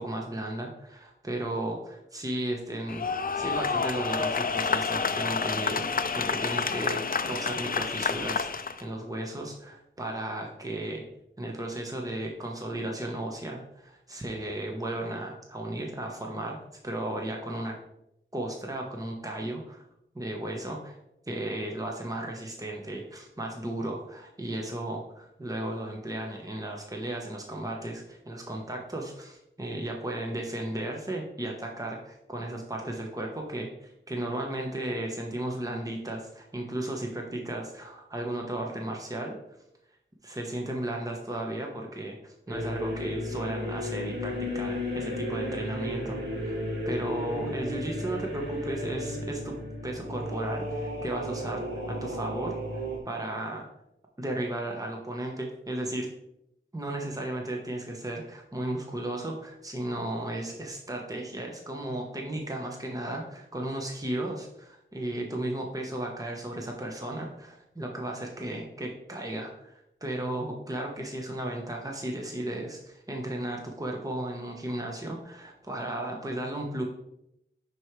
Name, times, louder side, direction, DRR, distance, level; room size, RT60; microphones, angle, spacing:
voice 1, 0.0-3.1 3.4-7.0 7.3-11.0 11.4-16.6 16.8-17.7 18.3-19.8 20.1-21.0 21.3-39.4 40.2-46.6 46.8-49.6 49.8-53.7 54.2-56.1 56.7-76.8, right 1 dB, 15° right, 0 dB, 1.1 m, -35 dB
sound 1, 2.9-8.8, left 5 dB, 45° left, 0.5 m, -29 dB
sound 2, 42.5-53.0, left 1 dB, 55° right, 2.5 m, -34 dB
10.5 x 4.7 x 3.3 m, 0.82 s
wide cardioid pair, 65°, 20 cm